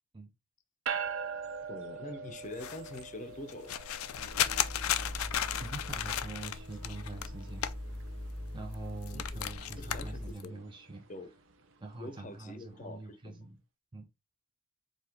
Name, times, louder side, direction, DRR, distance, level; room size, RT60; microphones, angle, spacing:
sound 1, 0.9-12.4, right 6 dB, 65° right, 0.6 m, -44 dB
voice 1, 1.7-3.7 9.1-9.4 9.8-10.6 11.1-11.3 12.0-13.5, left 2 dB, 35° left, 0.6 m, -45 dB
sound 2, 2.4-8.4 8.7-10.5, left 11 dB, 90° left, 0.4 m, -35 dB
sound 3, 4.1-10.3, left 1 dB, 90° right, 1.4 m, -42 dB
voice 2, 5.6-7.7 8.5-11.1 11.8-13.6 13.9-14.0, right 2 dB, 20° right, 0.5 m, -44 dB
4.6 x 2.8 x 3.5 m
head